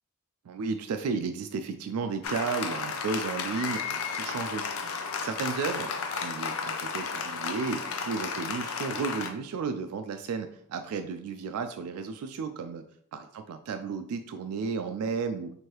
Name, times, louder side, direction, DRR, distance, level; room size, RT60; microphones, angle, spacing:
voice 1, 0.5-4.7 5.2-12.8 13.1-15.5, right 5 dB, 85° right, 8 dB, 0.3 m, -33 dB
Applause, 2.2-9.3, left 5 dB, 65° left, 0.5 m, -33 dB
4.6 x 2.7 x 3.0 m, 0.65 s
head